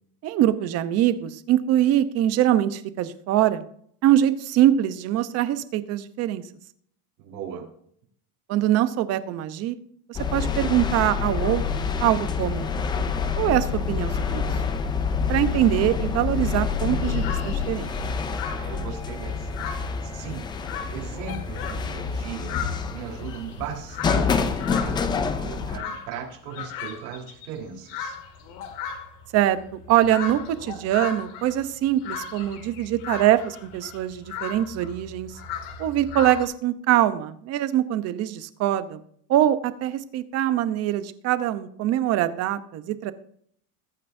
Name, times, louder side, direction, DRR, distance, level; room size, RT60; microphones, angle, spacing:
voice 1, 0.2-3.6 4.0-6.4 8.5-9.8 10.1-12.7 13.4-14.5 15.3-17.9 29.3-35.3 35.8-39.0 39.3-43.1, right 12 dB, 35° right, 12 dB, 0.9 m, -23 dB
voice 2, 7.2-7.7 18.5-19.5 20.0-22.6 22.9-28.2, right 7 dB, 80° right, -2 dB, 4.5 m, -38 dB
sound 1, 10.1-25.8, left 5 dB, 10° left, 0.4 m, -27 dB
sound 2, 17.0-36.4, left 7 dB, 45° left, 2.6 m, -37 dB
21.5 x 9.2 x 2.7 m, 0.64 s
supercardioid pair, 160°, 46 cm